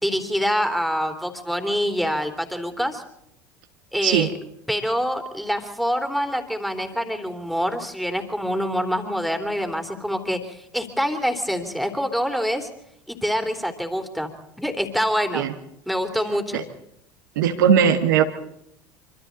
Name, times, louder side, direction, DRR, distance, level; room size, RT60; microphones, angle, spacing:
voice 1, 0.0-3.0 3.9-4.3 4.7-12.7 13.1-14.3 14.6-15.5 15.9-16.6, equal, ahead, 6 dB, 3.3 m, -25 dB
voice 2, 17.3-18.2, right 8 dB, 65° right, 5 dB, 1.7 m, -18 dB
25.5 x 25.5 x 4.0 m, 0.75 s
figure-of-eight pair, 70°, 11 cm